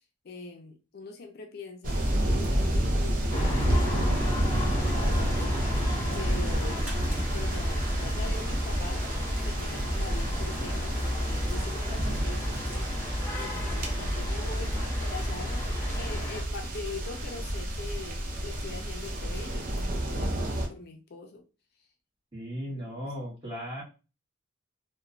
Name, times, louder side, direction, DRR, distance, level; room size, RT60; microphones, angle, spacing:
voice 1, 0.2-5.6 6.1-6.9 7.3-9.1 9.4-12.9 13.4-15.7 16.0-21.4 22.7-23.1, left 3 dB, 50° left, 4 dB, 0.4 m, -43 dB
sound 1, 1.8-20.7, right 1 dB, 45° right, 0.5 m, -30 dB
sound 2, 3.3-16.4, left 1 dB, 10° left, 1.3 m, -32 dB
sound 3, 6.2-12.1, equal, 5° right, 1.1 m, -44 dB
voice 2, 22.3-23.8, equal, 25° right, -6 dB, 1.4 m, -36 dB
2.9 x 2.1 x 2.5 m, 0.31 s
head